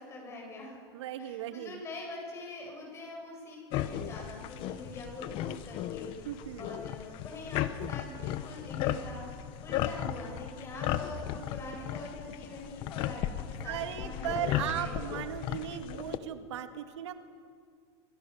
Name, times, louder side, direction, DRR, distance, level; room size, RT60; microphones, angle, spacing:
voice 1, 0.0-0.8 1.2-15.5, left 2 dB, 20° left, 0 dB, 8.0 m, -44 dB
voice 2, 0.9-1.8 6.2-6.7 13.7-17.1, right 11 dB, 75° right, 7 dB, 1.9 m, -37 dB
sound 1, 3.7-16.2, left 11 dB, 35° left, 1.1 m, -36 dB
26.5 x 25.5 x 7.2 m, 2.1 s
supercardioid pair, 160°, 15 cm